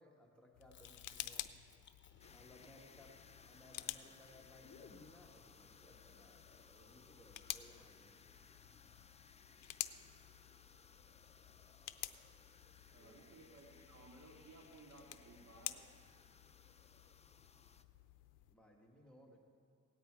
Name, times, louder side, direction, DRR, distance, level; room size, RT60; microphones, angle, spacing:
voice 1, 0.0-1.4 2.3-3.2 3.4-8.3 13.0-13.2 18.5-19.4, left 1 dB, 5° left, 0 dB, 1.6 m, -63 dB
sound 1, 0.5-18.5, left 15 dB, 90° left, 0.5 m, -51 dB
Chewing mastication, 0.7-5.1, left 7 dB, 40° left, 0.9 m, -61 dB
sound 2, 2.2-17.8, left 5 dB, 20° left, 0.5 m, -64 dB
voice 2, 12.9-15.9, right 2 dB, 60° right, -1 dB, 2.6 m, -59 dB
17.5 x 9.5 x 4.7 m, 2.4 s
cardioid pair, 90°, 30 cm